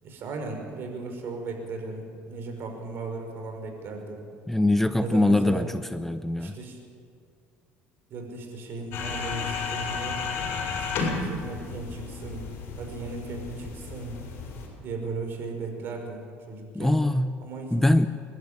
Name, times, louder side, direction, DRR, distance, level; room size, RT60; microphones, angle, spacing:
voice 1, 0.0-4.2 5.0-5.7 6.4-6.8 8.1-10.2 10.8-12.4 12.8-14.3 14.8-16.2 16.5-17.0 17.4-17.8, right 3 dB, 55° right, 4 dB, 5.3 m, -36 dB
voice 2, 4.5-5.7 5.9-6.5 16.7-17.3 17.7-18.1, left 1 dB, 5° left, 11 dB, 0.7 m, -22 dB
sound 1, 8.9-14.7, left 4 dB, 60° left, 6.3 m, -33 dB
29.5 x 12.0 x 8.8 m, 2.2 s
cardioid pair, 115°, 5 cm